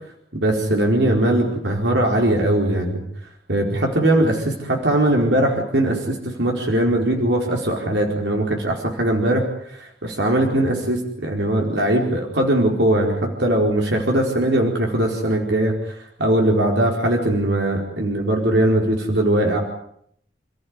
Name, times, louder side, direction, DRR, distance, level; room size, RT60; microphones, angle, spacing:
voice 1, 0.3-3.0 3.5-19.6, right 1 dB, 85° right, 1 dB, 4.6 m, -20 dB
29.5 x 15.5 x 9.8 m, 0.70 s
head